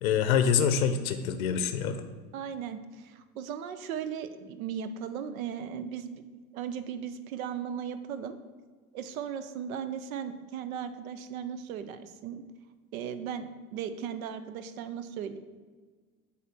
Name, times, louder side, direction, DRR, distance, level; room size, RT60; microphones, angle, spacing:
voice 1, 0.0-2.0, left 7 dB, 70° left, 9 dB, 0.6 m, -25 dB
voice 2, 2.3-8.4 8.9-12.4 12.9-15.4, right 8 dB, 65° right, 11 dB, 0.7 m, -37 dB
7.9 x 2.9 x 6.1 m, 1.5 s
figure-of-eight pair, 70°, 44 cm